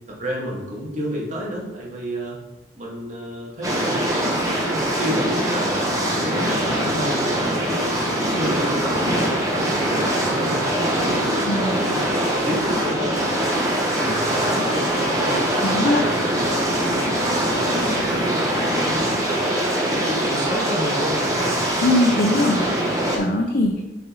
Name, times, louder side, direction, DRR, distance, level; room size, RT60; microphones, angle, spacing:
voice 1, 0.1-2.4 2.7-7.9 8.2-12.1 12.4-16.5 16.9-18.6 19.2-21.6, equal, 45° right, -3 dB, 1.9 m, -30 dB
sound 1, 3.6-23.2, right 1 dB, 20° right, 1.2 m, -22 dB
voice 2, 11.5-11.9 15.6-16.0 21.8-23.8, left 1 dB, 55° left, 2 dB, 0.6 m, -21 dB
7.6 x 5.0 x 3.1 m, 1.0 s
head